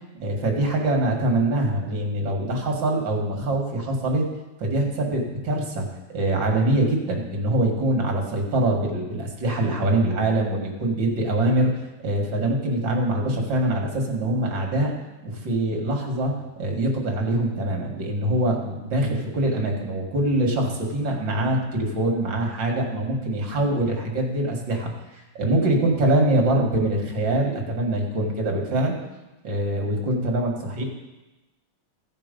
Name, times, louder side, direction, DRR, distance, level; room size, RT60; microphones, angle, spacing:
voice 1, 0.2-4.3 4.6-11.7 12.0-14.9 15.2-24.9 25.4-29.0 29.4-30.8, right 1 dB, 65° right, 1 dB, 2.5 m, -24 dB
15.0 x 6.0 x 5.2 m, 1.1 s
omnidirectional pair, 2.2 m